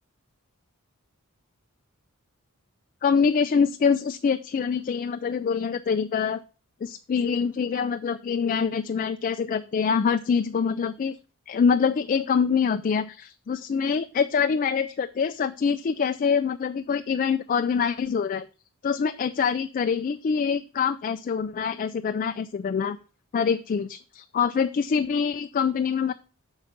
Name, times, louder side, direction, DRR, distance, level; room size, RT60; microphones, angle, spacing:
voice 1, 3.0-6.4 6.8-11.2 11.5-18.5 18.8-23.0 23.3-26.1, left 6 dB, 40° left, 9 dB, 0.3 m, -25 dB
6.4 x 5.1 x 5.7 m, 0.35 s
head